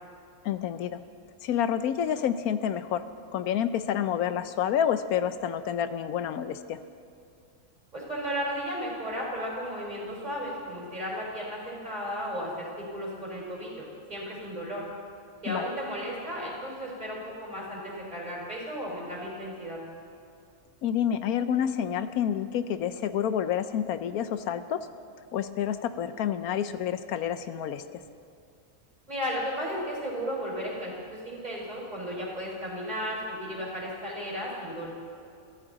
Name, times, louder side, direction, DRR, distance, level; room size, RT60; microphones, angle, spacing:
voice 1, 0.4-1.0 1.4-3.0 3.3-6.8 15.5-15.7 20.8-24.9 25.3-27.8, left 9 dB, 85° left, 11 dB, 1.2 m, -28 dB
voice 2, 7.9-13.8 14.1-14.8 15.4-19.8 29.1-34.9, equal, 30° right, -4 dB, 4.5 m, -34 dB
22.5 x 14.5 x 4.0 m, 2.5 s
omnidirectional pair, 1.5 m